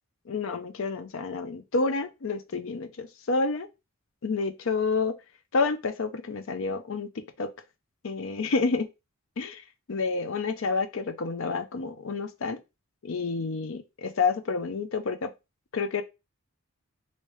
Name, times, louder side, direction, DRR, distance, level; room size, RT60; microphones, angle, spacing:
voice 1, 0.3-3.7 4.2-5.2 5.5-7.1 7.4-7.5 8.0-8.9 9.4-9.6 9.9-12.6 13.0-15.3 15.7-16.0, left 4 dB, 60° left, 0.5 m, -29 dB
3.2 x 2.8 x 3.1 m
head